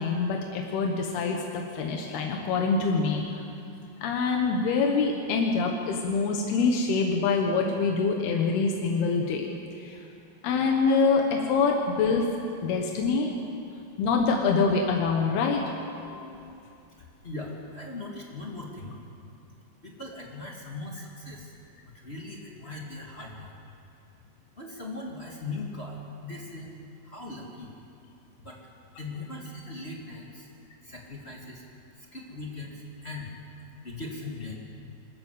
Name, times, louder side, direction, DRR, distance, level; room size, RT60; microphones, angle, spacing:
voice 1, 0.0-3.4 4.0-9.5 9.8-10.0 10.4-12.3 12.6-13.3 14.0-16.5, left 4 dB, 90° left, 1 dB, 3.3 m, -25 dB
voice 2, 17.0-19.0 19.8-21.5 21.8-23.6 24.6-26.7 27.0-27.7 28.4-28.6 29.0-30.5 30.8-31.6 31.9-33.3 33.8-34.6, left 2 dB, 25° left, -2 dB, 1.4 m, -39 dB
25.0 x 14.0 x 8.3 m, 2.7 s
omnidirectional pair, 4.4 m